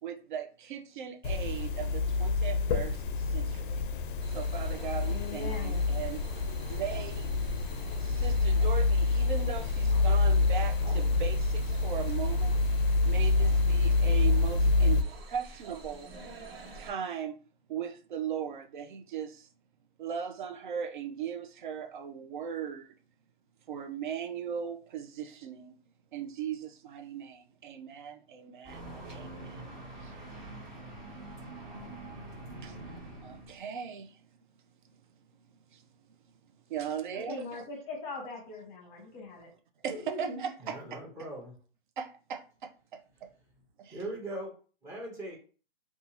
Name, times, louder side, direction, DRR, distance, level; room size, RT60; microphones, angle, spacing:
voice 1, 0.0-3.8 4.3-6.4 6.7-7.3 8.0-12.6 13.0-16.1 16.7-17.4 17.7-19.5 20.0-22.9 23.7-25.7 26.1-29.7 30.0-30.1 32.6-32.8 33.2-34.2 35.7-35.8 36.7-37.6 39.8-41.0 42.0-43.0 43.8-44.0, right 7 dB, 55° right, 0.5 m, -38 dB
sound 1, 1.2-15.0, left 3 dB, 60° left, 0.4 m, -27 dB
sound 2, 4.2-16.9, right 2 dB, 75° right, 1.2 m, -47 dB
voice 2, 5.1-5.8 37.1-39.5 39.9-40.4, left 2 dB, 20° left, 0.8 m, -40 dB
sound 3, 28.6-33.6, right 2 dB, 25° right, 1.1 m, -44 dB
voice 3, 40.6-41.6 43.9-44.5 44.8-45.4, right 1 dB, 10° right, 0.7 m, -40 dB
2.6 x 2.4 x 2.8 m
hypercardioid pair, 150°, 30 cm